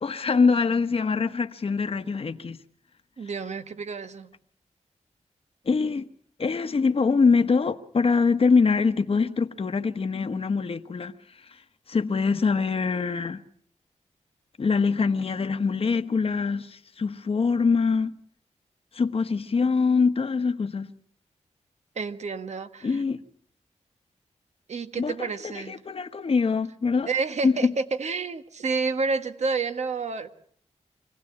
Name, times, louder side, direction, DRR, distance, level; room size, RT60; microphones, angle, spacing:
voice 1, 0.0-2.6 5.7-6.1 6.4-11.1 11.9-13.4 14.6-18.1 18.9-20.9 22.8-23.2 25.0-27.1 27.4-27.7, left 4 dB, 50° left, 1.1 m, -24 dB
voice 2, 3.2-4.3 21.9-23.0 24.7-25.8 27.0-30.3, right 4 dB, 65° right, 1.6 m, -29 dB
25.5 x 17.5 x 8.6 m
wide cardioid pair, 85°, 12 cm